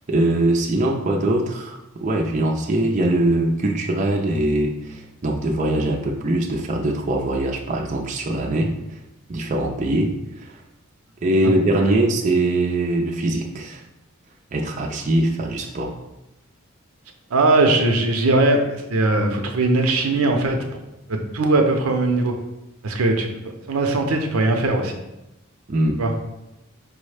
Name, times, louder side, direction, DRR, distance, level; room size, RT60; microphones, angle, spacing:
voice 1, 0.1-8.7 9.3-10.5 11.2-13.8 14.5-15.9 25.7-26.0, right 1 dB, 35° right, 0 dB, 0.4 m, -22 dB
voice 2, 17.3-20.6 21.1-22.3 22.8-23.3 23.7-25.0 26.0-26.1, right 2 dB, 90° right, 4 dB, 0.6 m, -20 dB
5.0 x 2.1 x 4.8 m, 0.93 s
head